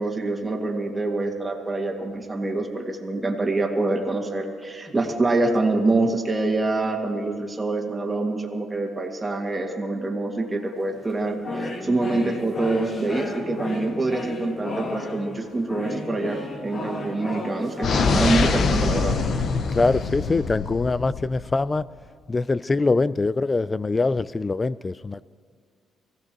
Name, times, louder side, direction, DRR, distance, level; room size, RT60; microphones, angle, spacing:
voice 1, 0.0-19.2, right 2 dB, 20° right, 2.2 m, -25 dB
sound 1, 10.4-10.7 11.1-18.6, left 2 dB, 45° left, 1.7 m, -33 dB
sound 2, 17.8-21.6, left 4 dB, 60° left, 0.8 m, -24 dB
voice 2, 19.7-21.9 22.3-25.2, left 3 dB, 25° left, 0.3 m, -23 dB
23.5 x 16.0 x 3.0 m
cardioid pair, 90°, 0 cm